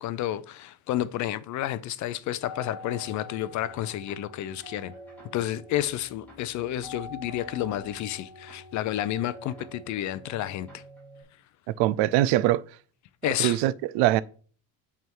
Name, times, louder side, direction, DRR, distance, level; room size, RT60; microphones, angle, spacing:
voice 1, 0.0-4.9 5.3-10.8 13.2-13.6, left 13 dB, 45° left, 0.5 m, -30 dB
sound 1, 2.4-11.2, left 1 dB, 5° left, 2.9 m, -46 dB
voice 2, 11.7-12.6 13.4-14.2, right 15 dB, 90° right, 0.6 m, -23 dB
9.2 x 3.6 x 4.5 m
cardioid pair, 170°, 41 cm